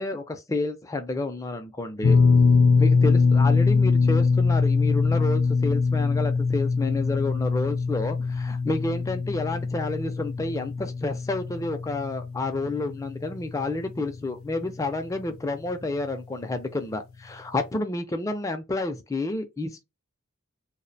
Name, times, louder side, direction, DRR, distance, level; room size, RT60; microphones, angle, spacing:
voice 1, 0.0-2.2 2.8-19.8, left 2 dB, 15° left, 0.3 m, -30 dB
sound 1, 2.0-14.3 14.5-14.8 16.4-16.5, left 4 dB, 90° left, 0.4 m, -23 dB
2.4 x 2.0 x 2.6 m
head